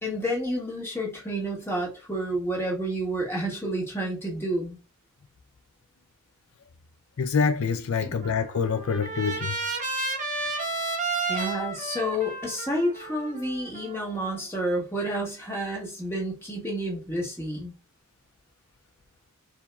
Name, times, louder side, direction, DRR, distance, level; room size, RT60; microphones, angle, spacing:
voice 1, 0.0-4.8 8.0-8.2 10.4-10.6 11.3-17.7, equal, 10° left, 1.7 m, -30 dB
voice 2, 7.2-9.6, left 5 dB, 70° left, 0.5 m, -26 dB
Trumpet, 8.2-14.4, right 3 dB, 35° right, 0.9 m, -32 dB
4.7 x 2.7 x 3.4 m
head